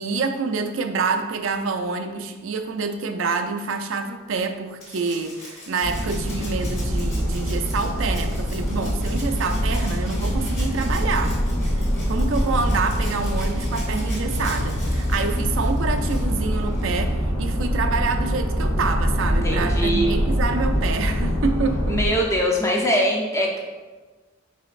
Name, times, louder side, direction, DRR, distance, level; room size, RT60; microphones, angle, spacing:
voice 1, 0.0-11.4 11.8-22.0, right 4 dB, 70° right, 7 dB, 0.4 m, -27 dB
Rattle (instrument), 4.8-17.1 18.5-18.6, left 1 dB, 30° left, 1.4 m, -42 dB
sound 1, 5.8-22.1, equal, 80° left, 1.1 m, -24 dB
voice 2, 19.4-20.1 21.9-23.6, equal, 15° left, -1 dB, 0.6 m, -22 dB
5.0 x 4.0 x 2.4 m, 1.3 s
head